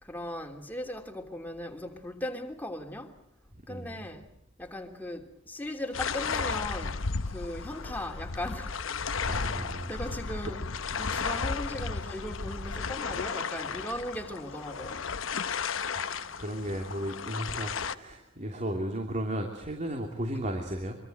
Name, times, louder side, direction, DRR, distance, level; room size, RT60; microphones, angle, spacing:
voice 1, 0.0-3.2 3.7-4.3 4.6-8.8 9.9-15.1, left 1 dB, 10° left, 3.0 m, -38 dB
voice 2, 3.7-4.0 9.2-9.9 15.9-21.0, equal, 40° right, 2.9 m, -35 dB
sound 1, 5.9-18.0, left 5 dB, 80° left, 1.0 m, -34 dB
25.0 x 25.0 x 8.0 m
head